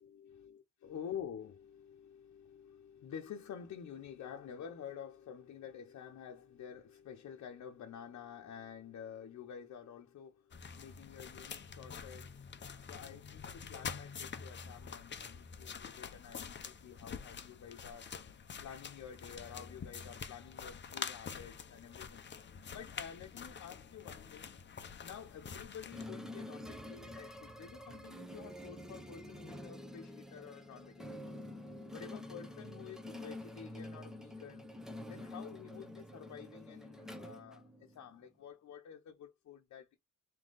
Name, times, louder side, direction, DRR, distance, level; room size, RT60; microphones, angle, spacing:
voice 1, 0.0-18.1 18.6-22.2 22.7-24.5 25.0-31.3 31.9-34.7 35.1-40.0, left 8 dB, 65° left, 1.0 m, -50 dB
sound 1, 10.5-26.1, left 6 dB, 35° left, 0.9 m, -46 dB
sound 2, 25.9-38.2, left 1 dB, ahead, 0.9 m, -48 dB
3.6 x 3.1 x 3.9 m
cardioid pair, 90°, 30 cm